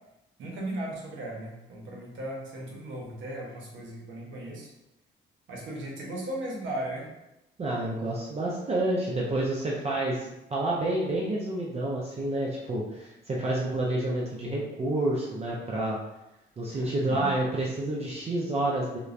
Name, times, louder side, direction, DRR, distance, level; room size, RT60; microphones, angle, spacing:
voice 1, 0.4-4.7 5.5-7.1 16.7-17.3, right 1 dB, 75° right, -2 dB, 0.8 m, -36 dB
voice 2, 7.6-16.0 16.6-19.0, right 1 dB, 30° right, -4 dB, 0.5 m, -29 dB
2.9 x 2.1 x 2.4 m, 0.92 s
cardioid pair, 90°, 20 cm